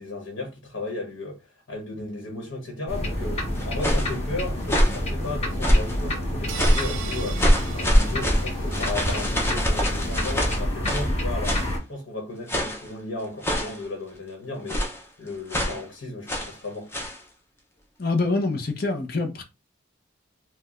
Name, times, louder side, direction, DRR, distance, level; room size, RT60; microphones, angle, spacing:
voice 1, 0.0-14.9 15.2-17.0, left 2 dB, 75° left, 1.2 m, -35 dB
sound 1, 2.9-11.8, left 1 dB, 30° left, 1.0 m, -28 dB
sound 2, 3.5-4.1 4.6-5.0 5.6-6.0 6.5-6.9 7.4-11.1 11.4-11.7 12.5-12.9 13.4-13.8 14.7-15.0 15.5-15.8 16.3-16.6 16.9-17.2, equal, 10° left, 0.6 m, -23 dB
sound 3, 6.5-9.0, right 8 dB, 75° right, 0.5 m, -38 dB
voice 2, 18.0-19.4, left 3 dB, 50° left, 0.7 m, -25 dB
4.6 x 2.2 x 2.4 m
head